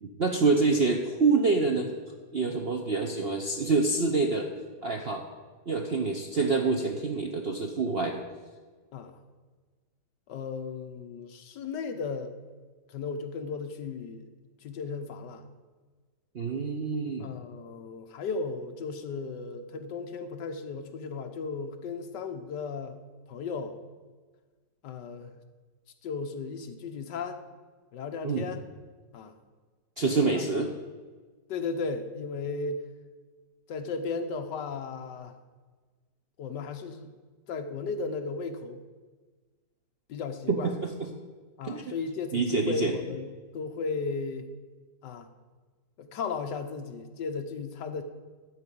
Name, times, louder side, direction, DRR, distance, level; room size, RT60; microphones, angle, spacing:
voice 1, 0.0-1.9 2.3-4.5 4.8-5.2 5.7-8.2 16.3-17.3 28.2-28.5 30.0-30.7 40.5-40.7 41.6-41.9 42.3-42.9, right 4 dB, 55° right, 3 dB, 0.7 m, -26 dB
voice 2, 10.3-12.3 12.9-14.3 14.6-15.4 17.2-23.0 23.3-23.8 24.8-25.4 26.0-27.4 27.9-28.6 29.1-29.3 30.0-30.5 31.5-32.8 33.7-35.3 36.4-37.1 37.5-38.8 40.1-40.7 41.6-44.5 45.0-45.3 46.0-48.0, left 4 dB, 70° left, 7 dB, 1.4 m, -35 dB
12.5 x 4.8 x 8.3 m, 1.4 s
omnidirectional pair, 2.0 m